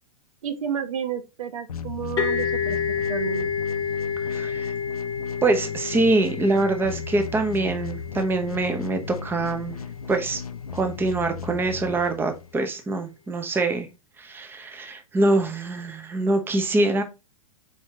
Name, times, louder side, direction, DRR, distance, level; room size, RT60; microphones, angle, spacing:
voice 1, 0.4-3.5, right 8 dB, 75° right, 0.9 m, -31 dB
sound 1, 1.7-12.6, left 6 dB, 90° left, 0.5 m, -36 dB
sound 2, 2.2-9.7, left 6 dB, 25° left, 1.1 m, -30 dB
voice 2, 4.2-4.7 5.4-9.8 10.1-10.4 10.7-13.9 14.2-17.0, right 2 dB, 10° right, 0.7 m, -24 dB
4.3 x 4.3 x 2.4 m
hypercardioid pair, 105°, 18 cm